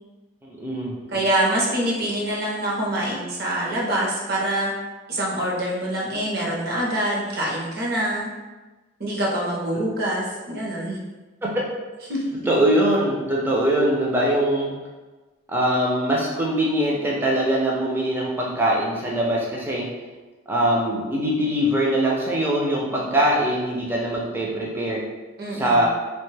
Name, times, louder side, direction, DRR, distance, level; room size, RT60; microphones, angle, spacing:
voice 1, 0.4-1.2 9.7-9.8 11.4-11.6 12.5-14.7 15.5-19.9 20.5-25.1 25.5-25.9, right 1 dB, 10° right, -4 dB, 0.4 m, -22 dB
voice 2, 1.1-4.7 5.1-8.3 9.0-11.0 12.1-12.4 25.4-25.9, right 1 dB, 50° right, -3 dB, 0.7 m, -25 dB
2.9 x 2.2 x 3.2 m, 1.2 s
head